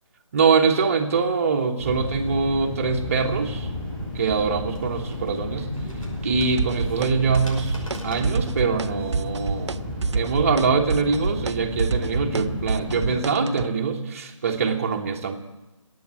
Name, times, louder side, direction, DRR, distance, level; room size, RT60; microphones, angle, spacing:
voice 1, 0.3-3.7 4.1-5.7 6.2-7.8 8.0-15.4, right 5 dB, 25° right, 3 dB, 1.3 m, -23 dB
sound 1, 1.8-13.2, left 1 dB, 10° left, 3.4 m, -32 dB
sound 2, 4.4-9.5, equal, 85° left, 5.8 m, -45 dB
sound 3, 6.6-7.1 7.3-8.9 9.1-9.8 10.0-13.7, right 4 dB, 60° right, 0.5 m, -26 dB
21.0 x 8.8 x 7.5 m, 1.1 s
figure-of-eight pair, 160°, 17 cm